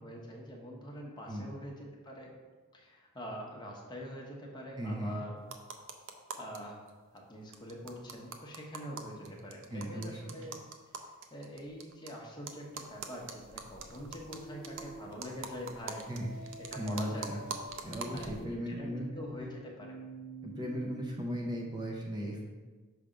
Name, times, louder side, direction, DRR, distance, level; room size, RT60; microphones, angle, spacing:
voice 1, 0.0-2.3 2.7-5.4 6.4-6.8 7.1-10.6 11.3-16.1 16.6-17.4 18.1-20.0, equal, 20° left, -1 dB, 0.9 m, -44 dB
voice 2, 4.8-5.2 9.7-10.4 16.1-17.4 17.8-19.1 20.4-22.4, equal, 20° right, -1 dB, 0.6 m, -37 dB
sound 1, 5.4-6.6 6.9-7.0 7.2-7.3 7.5-12.1 12.5-18.4, right 5 dB, 60° right, 0.5 m, -44 dB
sound 2, 14.3-15.1 16.2-21.3, right 1 dB, 40° left, 0.5 m, -47 dB
6.2 x 3.4 x 5.0 m, 1.4 s
head